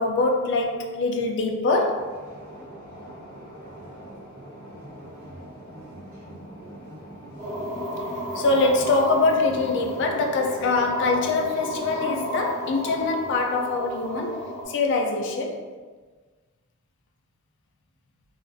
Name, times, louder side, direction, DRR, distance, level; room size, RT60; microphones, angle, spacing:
voice 1, 0.0-2.2 8.3-15.6, left 3 dB, 55° left, 3 dB, 0.3 m, -24 dB
sound 1, 2.0-13.2, right 1 dB, 60° right, 0.9 m, -43 dB
sound 2, 7.4-14.6, left 1 dB, 20° right, 1.0 m, -33 dB
2.4 x 2.3 x 2.4 m, 1.4 s
head